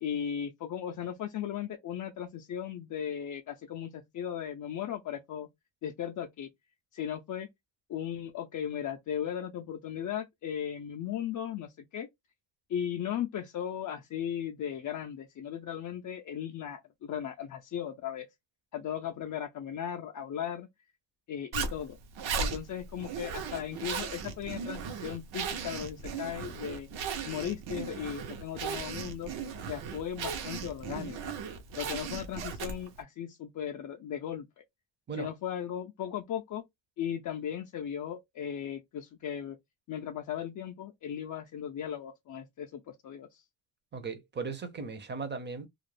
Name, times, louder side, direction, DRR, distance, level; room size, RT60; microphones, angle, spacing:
voice 1, 0.0-5.5 5.8-6.5 6.9-7.5 7.9-12.1 12.7-18.3 18.7-20.7 21.3-22.0 22.4-26.9 27.2-29.3 29.6-31.3 31.8-34.5 35.2-36.6 37.0-39.6 39.9-43.4, left 9 dB, 45° left, 0.4 m, -37 dB
Zipper (clothing), 21.5-33.0, right 6 dB, 80° right, 0.8 m, -37 dB
voice 2, 43.9-45.7, right 4 dB, 25° right, 0.6 m, -37 dB
2.4 x 2.0 x 3.1 m
cardioid pair, 125°, 45 cm